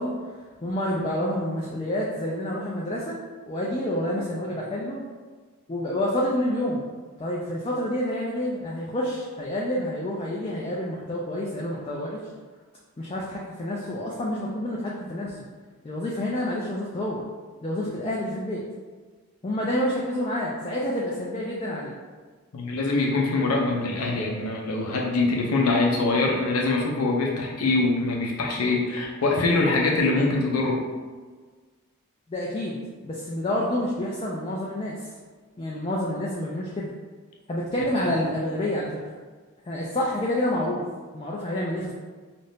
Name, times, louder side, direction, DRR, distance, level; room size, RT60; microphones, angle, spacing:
voice 1, 0.0-3.2 3.5-5.0 5.7-6.8 7.2-12.2 13.0-15.4 15.8-17.2 17.6-18.6 19.4-22.0 32.3-35.1 35.6-36.9 37.5-39.0 39.7-40.8 41.1-41.9, left 1 dB, 25° left, -4 dB, 0.3 m, -28 dB
voice 2, 22.5-30.8 38.0-38.1, left 3 dB, 90° left, 0 dB, 0.6 m, -23 dB
2.6 x 2.5 x 3.4 m, 1.4 s
head